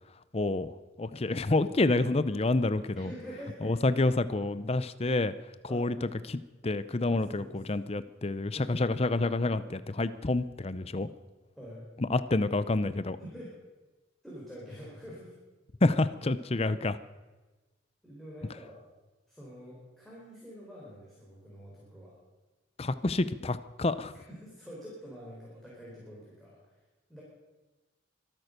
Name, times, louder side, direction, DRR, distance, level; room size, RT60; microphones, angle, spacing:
voice 1, 0.3-3.1 3.6-5.3 5.7-11.1 12.0-13.2 15.8-17.0 22.8-24.1, left 2 dB, 30° left, 14 dB, 0.6 m, -28 dB
voice 2, 3.0-3.7 5.7-5.9 7.1-7.9 8.5-9.0 11.6-11.9 13.2-13.5 14.2-15.3 18.0-18.8 19.3-22.2 24.1-26.6 27.1-27.2, equal, ahead, -6 dB, 4.3 m, -46 dB
24.0 x 9.1 x 6.7 m, 1.2 s
head